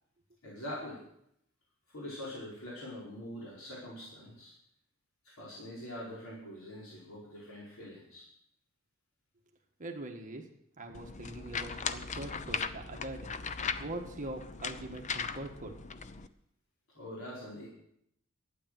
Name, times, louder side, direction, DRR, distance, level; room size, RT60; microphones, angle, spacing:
voice 1, 0.4-1.0 1.9-4.5 5.2-8.3 16.9-17.7, left 1 dB, 75° left, -6 dB, 4.9 m, -44 dB
voice 2, 9.8-10.4 10.8-13.3 13.8-15.7, right 2 dB, 40° right, 3 dB, 1.5 m, -42 dB
sound 1, 10.9-16.3, left 5 dB, 35° left, 0.6 m, -38 dB
12.5 x 9.2 x 7.7 m, 0.74 s
head